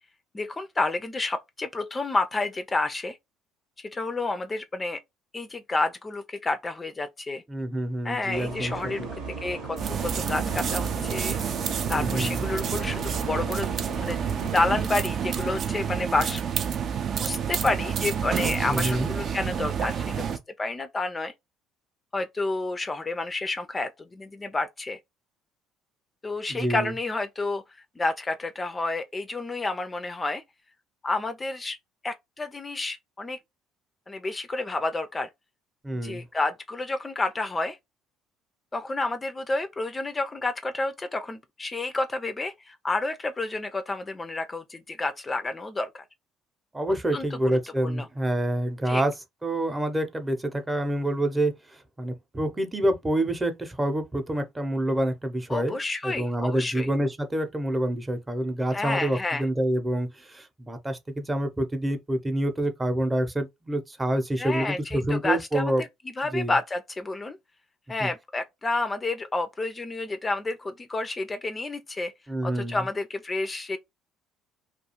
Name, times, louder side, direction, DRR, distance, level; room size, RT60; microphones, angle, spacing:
voice 1, 0.3-3.2 3.8-5.0 5.3-7.4 8.0-9.1 9.4-11.4 11.9-13.7 14.0-14.2 14.5-16.4 17.1-21.3 22.1-25.0 26.2-27.6 28.0-30.4 31.0-31.8 32.0-33.4 34.1-35.3 36.0-37.8 38.7-46.0 47.1-48.1 48.9-49.0 55.5-56.9 58.7-59.4 64.4-65.9 66.2-67.4 67.9-72.1 72.4-73.8, left 2 dB, 25° left, 0.3 m, -30 dB
voice 2, 7.5-9.1 11.9-12.4 18.7-19.1 26.5-26.9 35.8-36.2 46.7-49.1 49.4-55.8 56.0-65.8 66.3-66.5 68.0-68.1 72.3-72.9, right 1 dB, 20° right, 0.7 m, -27 dB
sound 1, 8.3-14.8, right 3 dB, 75° right, 0.9 m, -38 dB
sound 2, 9.8-20.4, right 7 dB, 50° right, 0.4 m, -29 dB
2.4 x 2.3 x 2.9 m
hypercardioid pair, 65°, 0 cm